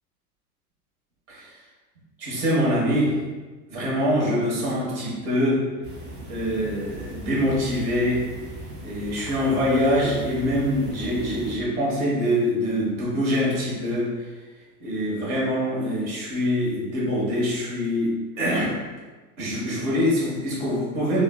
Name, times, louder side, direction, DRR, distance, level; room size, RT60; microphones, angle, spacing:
voice 1, 2.2-3.2 3.7-5.6 6.3-8.3 8.8-14.1 14.8-18.7 19.4-21.2, equal, 60° right, -6 dB, 1.3 m, -24 dB
sound 1, 5.8-11.6, right 1 dB, 25° right, 0.4 m, -38 dB
3.0 x 2.1 x 2.2 m, 1.3 s
hypercardioid pair, 80°, 46 cm